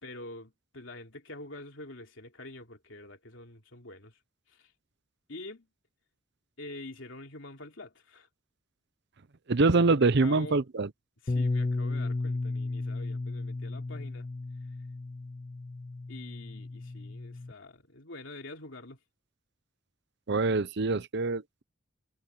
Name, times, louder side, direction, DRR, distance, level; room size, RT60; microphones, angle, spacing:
voice 1, 0.0-4.2 4.5-4.7 5.3-5.7 6.6-8.3 10.2-10.6 11.2-14.3 16.1-19.0, left 2 dB, 70° left, 3.3 m, -46 dB
voice 2, 9.5-10.9 20.3-21.6, right 3 dB, 60° right, 0.7 m, -25 dB
Bass guitar, 11.3-17.5, left 2 dB, 30° left, 0.4 m, -34 dB
head